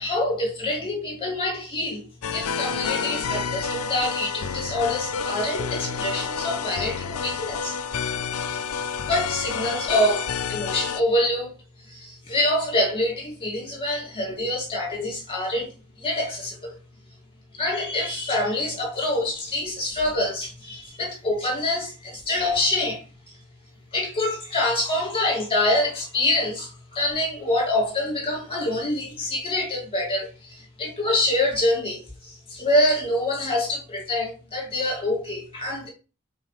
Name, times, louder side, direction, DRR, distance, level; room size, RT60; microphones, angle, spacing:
voice 1, 0.0-2.1 2.3-8.1 9.0-11.5 11.8-15.7 16.0-16.8 17.5-23.4 23.9-35.9, left 1 dB, 25° left, 2.5 m, -26 dB
sound 1, 2.2-11.0, left 6 dB, 70° left, 0.4 m, -29 dB
6.9 x 4.0 x 3.4 m
head